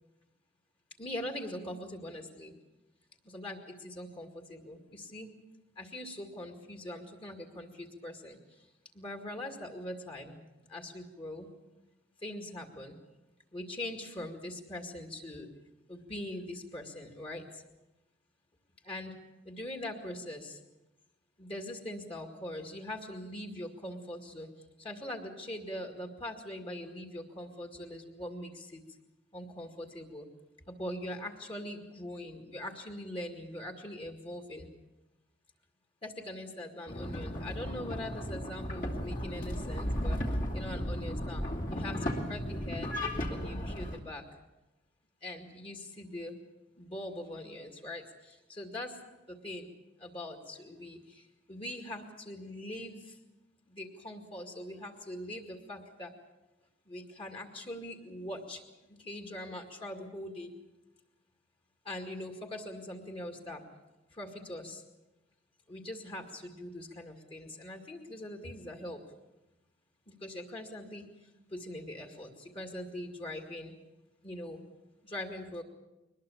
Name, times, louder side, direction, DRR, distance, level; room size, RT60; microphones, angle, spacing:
voice 1, 1.0-2.5 3.3-5.3 5.8-8.4 8.9-10.4 10.7-11.5 12.2-13.0 13.5-15.5 15.9-17.5 18.8-19.1 19.5-20.6 21.4-24.5 24.8-28.8 29.3-30.3 30.7-34.7 36.0-40.2 40.5-41.4 41.7-42.9 43.3-44.2 45.2-46.3 46.8-49.0 49.3-49.7 50.0-53.2 53.7-56.1 56.9-58.6 59.0-60.5 61.9-63.6 64.1-64.8 65.7-69.0 70.1-71.1 71.5-73.7 74.2-74.6 75.0-75.6, left 1 dB, 30° left, 4 dB, 2.1 m, -42 dB
sound 1, 36.9-44.0, equal, 45° left, 2.6 m, -35 dB
23.0 x 20.0 x 7.1 m, 1.0 s
head